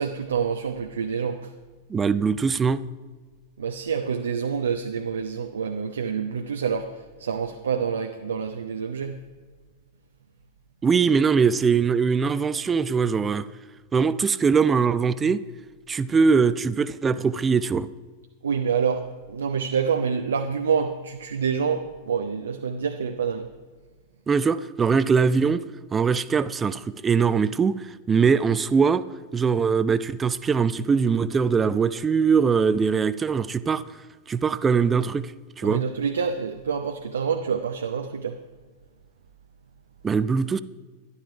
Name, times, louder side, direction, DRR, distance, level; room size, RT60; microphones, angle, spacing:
voice 1, 0.0-1.5 3.6-9.2 18.4-23.5 35.6-38.4, right 6 dB, 70° right, 0.6 m, -27 dB
voice 2, 1.9-2.8 10.8-13.5 13.9-15.4 15.9-17.9 24.3-25.6 25.9-29.0 29.3-33.8 34.3-35.8 40.0-40.6, right 5 dB, 20° right, 0.5 m, -22 dB
12.5 x 11.5 x 4.8 m
figure-of-eight pair, 90°, 0 cm